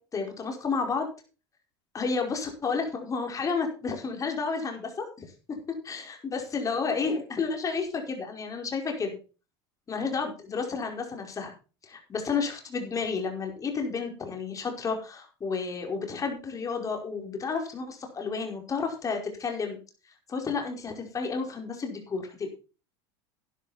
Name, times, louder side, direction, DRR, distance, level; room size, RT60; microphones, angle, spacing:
voice 1, 0.1-1.1 1.9-9.1 9.9-11.5 11.8-19.8 20.3-22.5, left 5 dB, 25° left, 3 dB, 5.0 m, -31 dB
12.0 x 11.0 x 4.3 m, 0.34 s
supercardioid pair, 105°, 13 cm